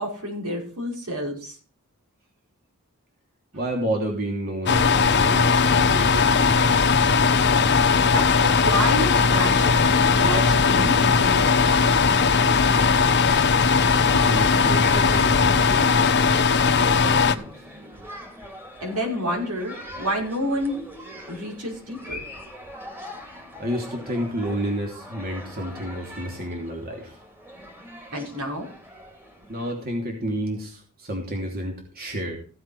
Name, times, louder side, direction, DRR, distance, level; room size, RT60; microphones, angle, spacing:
voice 1, 0.0-1.6 8.1-9.8 10.2-11.9 18.8-20.9 21.3-22.2 28.1-28.7, equal, 85° right, -1 dB, 5.6 m, -29 dB
voice 2, 3.5-6.7 14.1-16.0 16.7-18.0 23.6-27.2 29.5-32.3, right 1 dB, 45° right, 0 dB, 3.1 m, -31 dB
sound 1, 4.7-17.4, left 5 dB, 50° left, 1.1 m, -19 dB
sound 2, 4.8-15.8, left 2 dB, 25° left, 0.8 m, -34 dB
sound 3, 11.8-29.7, equal, 10° right, 2.8 m, -41 dB
15.5 x 7.7 x 4.8 m, 0.40 s
head